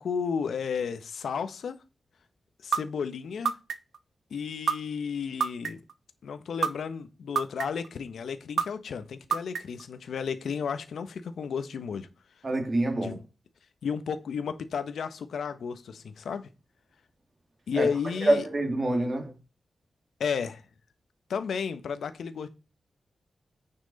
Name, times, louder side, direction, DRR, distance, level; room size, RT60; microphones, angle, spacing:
voice 1, 0.0-1.8 2.6-3.6 4.3-5.8 6.2-12.1 12.9-13.2 13.8-16.5 17.7-18.5 20.2-20.6 21.3-22.5, left 6 dB, 85° left, 1.3 m, -33 dB
sound 1, 2.7-2.8 3.4-4.0 4.7-4.8 5.4-5.9 6.6-6.7 7.4-7.9 8.6-8.7 9.3-9.8, right 6 dB, 85° right, 0.9 m, -26 dB
voice 2, 12.4-13.1 17.8-17.9 18.2-19.3, right 1 dB, 35° right, 2.8 m, -26 dB
9.8 x 6.1 x 4.2 m
wide cardioid pair, 115°, 0 cm